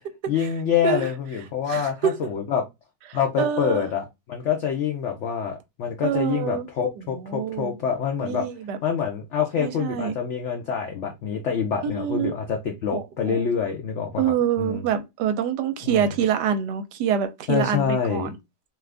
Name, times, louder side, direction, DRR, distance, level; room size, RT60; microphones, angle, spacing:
voice 1, 0.3-2.6 3.1-8.4 8.8-14.3 14.6-14.9 15.8-16.1 17.5-18.3, left 7 dB, 85° left, 0.6 m, -26 dB
voice 2, 1.7-2.1 3.4-3.8 6.0-6.7 7.0-7.8 8.2-8.8 9.6-10.1 11.8-12.3 12.9-13.4 14.2-18.4, right 8 dB, 75° right, 1.1 m, -26 dB
2.9 x 2.4 x 3.3 m
omnidirectional pair, 1.9 m